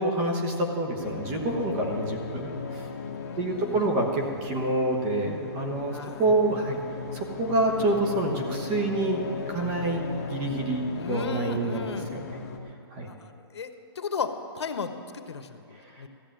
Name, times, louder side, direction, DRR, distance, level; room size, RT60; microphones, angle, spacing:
voice 1, 0.0-2.9 3.4-6.8 7.1-9.2 9.5-12.4 12.9-13.1, right 2 dB, 20° right, 2 dB, 1.1 m, -27 dB
sound 1, 1.0-12.6, left 4 dB, 35° left, 1.1 m, -37 dB
voice 2, 3.2-3.9 5.9-6.2 10.9-12.1 13.0-13.7 13.9-16.1, left 5 dB, 85° left, 8 dB, 1.2 m, -35 dB
14.5 x 6.9 x 8.9 m, 2.7 s
hypercardioid pair, 175°, 14 cm